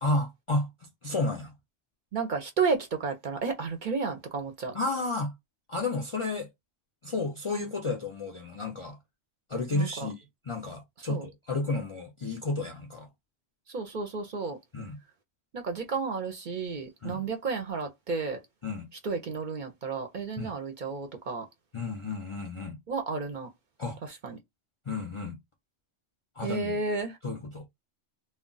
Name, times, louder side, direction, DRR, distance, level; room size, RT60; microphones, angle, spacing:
voice 1, 0.0-0.7 1.0-1.5 4.7-5.3 5.7-6.5 7.0-9.0 9.5-13.1 14.7-15.0 17.0-17.2 18.6-18.9 20.4-20.5 21.7-22.8 23.8-24.0 24.9-25.4 26.4-26.8 27.2-27.7, left 2 dB, 50° left, 0.3 m, -32 dB
voice 2, 2.1-4.7 9.7-10.1 11.1-11.3 13.7-14.6 15.5-18.4 19.0-21.5 22.9-23.5 24.0-24.4 26.4-27.2, right 4 dB, 55° right, 0.6 m, -32 dB
2.3 x 2.1 x 3.8 m
omnidirectional pair, 1.2 m